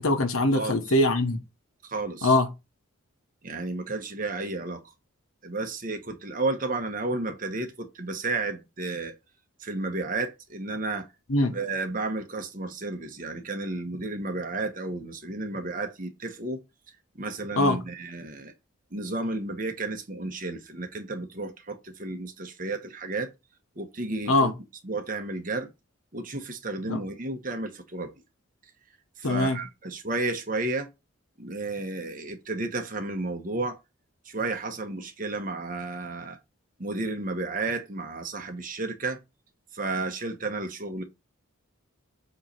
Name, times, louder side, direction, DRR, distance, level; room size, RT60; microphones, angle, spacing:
voice 1, 0.0-1.4 2.2-2.5 11.3-11.5 17.6-17.8 24.3-24.5 26.9-27.0 29.2-29.6, left 2 dB, 80° left, 1.2 m, -22 dB
voice 2, 0.5-0.9 1.8-2.4 3.4-4.8 5.4-9.1 9.6-11.1 11.5-16.6 17.1-18.5 18.9-23.3 23.8-24.5 24.8-25.7 26.1-28.1 29.2-30.9 31.4-33.8 34.2-36.4 36.8-39.2 39.7-41.0, right 2 dB, 40° right, 1.1 m, -32 dB
7.7 x 3.1 x 4.2 m
head